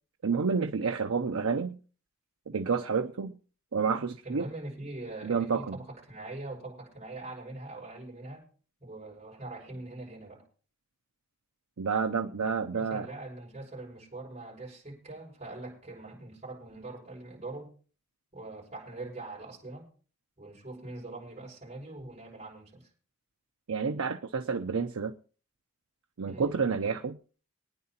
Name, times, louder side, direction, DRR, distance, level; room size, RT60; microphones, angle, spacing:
voice 1, 0.2-1.8 2.5-3.4 3.7-4.5 5.2-5.8 11.8-13.1 23.7-25.1 26.2-27.2, right 5 dB, 80° right, 0.7 m, -29 dB
voice 2, 4.2-8.5 8.8-10.4 12.7-17.7 18.3-19.9 20.4-22.9 26.2-26.6, right 2 dB, 30° right, 5.8 m, -43 dB
23.5 x 9.6 x 2.9 m
head